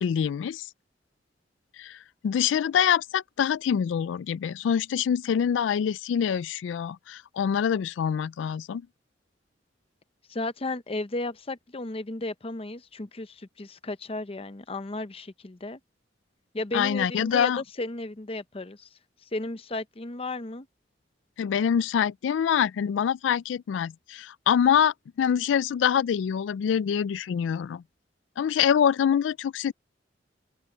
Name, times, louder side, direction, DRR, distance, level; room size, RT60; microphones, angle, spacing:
voice 1, 0.0-0.7 1.8-8.9 16.7-17.6 21.4-27.8 28.4-29.7, left 8 dB, 90° left, 0.3 m, -25 dB
voice 2, 10.3-15.8 16.5-18.9 19.3-20.7, left 2 dB, 30° left, 0.7 m, -34 dB
head